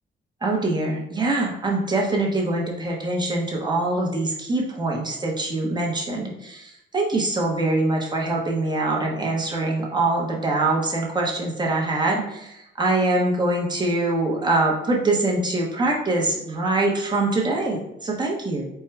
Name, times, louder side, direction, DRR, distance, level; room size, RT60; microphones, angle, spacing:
voice 1, 0.4-18.7, right 2 dB, 20° right, -2 dB, 1.0 m, -24 dB
4.5 x 2.2 x 4.6 m, 0.86 s
cardioid pair, 115°, 20 cm